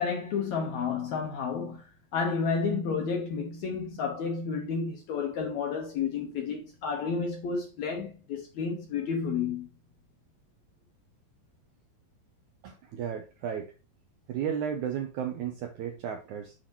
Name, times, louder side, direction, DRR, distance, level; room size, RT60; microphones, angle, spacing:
voice 1, 0.0-1.9 2.1-9.7, left 5 dB, 70° left, 1.8 m, -31 dB
voice 2, 12.6-13.7 14.3-16.5, right 8 dB, 80° right, 1.8 m, -34 dB
7.6 x 6.3 x 2.9 m
omnidirectional pair, 4.3 m